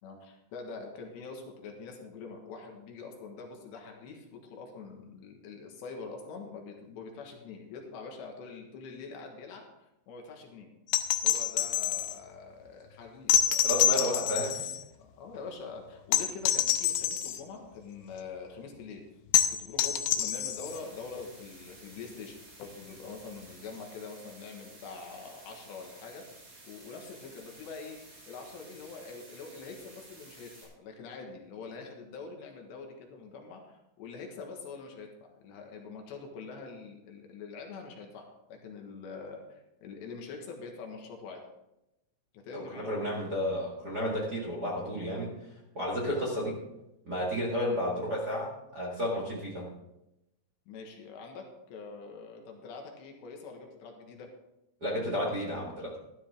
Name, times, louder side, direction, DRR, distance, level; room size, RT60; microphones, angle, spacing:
voice 1, 0.0-10.7 11.2-13.6 15.0-19.0 19.5-26.2 26.6-41.4 42.3-43.1 50.7-54.3, left 4 dB, 75° left, 2 dB, 3.5 m, -44 dB
sound 1, 10.9-12.2 13.3-14.8 16.1-17.4 19.3-20.8 22.6-22.7, left 10 dB, 90° left, 3.2 m, -27 dB
voice 2, 13.6-14.7 42.5-45.3 45.7-46.6 47.0-49.7 54.8-56.0, equal, 75° right, -3 dB, 0.9 m, -32 dB
sound 2, 20.6-30.6, right 2 dB, 35° right, 3.7 m, -53 dB
13.0 x 12.5 x 3.6 m, 0.89 s
omnidirectional pair, 5.4 m